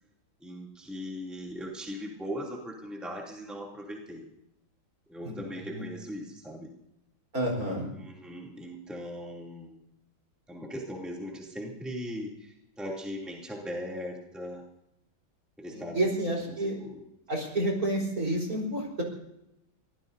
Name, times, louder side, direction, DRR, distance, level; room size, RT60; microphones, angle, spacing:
voice 1, 0.4-4.3 5.1-6.7 7.9-9.8 10.5-14.6 15.6-16.1 16.5-17.0, equal, ahead, -2 dB, 2.7 m, -39 dB
voice 2, 7.3-7.9 15.7-16.8 17.3-19.0, right 1 dB, 45° right, 0 dB, 4.7 m, -29 dB
24.5 x 17.0 x 2.7 m, 0.82 s
omnidirectional pair, 2.2 m